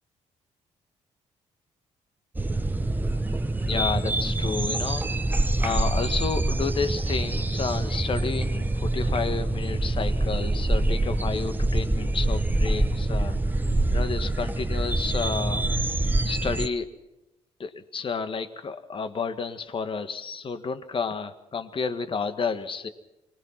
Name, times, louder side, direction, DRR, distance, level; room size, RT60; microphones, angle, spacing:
sound 1, 2.4-16.7, right 2 dB, 15° right, 1.0 m, -25 dB
voice 1, 3.6-5.0 5.6-13.3 13.9-15.6 16.2-16.9 17.6-22.9, left 5 dB, 45° left, 10 dB, 1.7 m, -31 dB
24.5 x 19.5 x 6.0 m, 0.94 s
cardioid pair, 75°, 12 cm